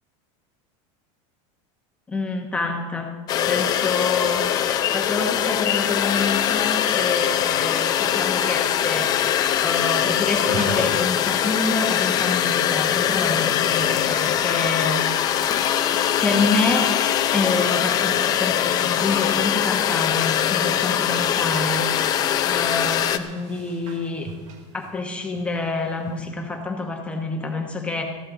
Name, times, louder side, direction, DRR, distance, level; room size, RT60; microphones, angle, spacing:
voice 1, 2.1-3.2 3.5-9.2 9.6-15.3 16.2-17.1 17.3-22.2 22.4-24.3 24.7-28.0, left 3 dB, 5° left, 2 dB, 1.1 m, -27 dB
sound 1, 3.3-23.2, left 10 dB, 25° left, 0.6 m, -22 dB
sound 2, 9.9-26.3, right 4 dB, 65° right, 2.6 m, -43 dB
17.5 x 14.5 x 3.9 m, 1.4 s
supercardioid pair, 175°, 16 cm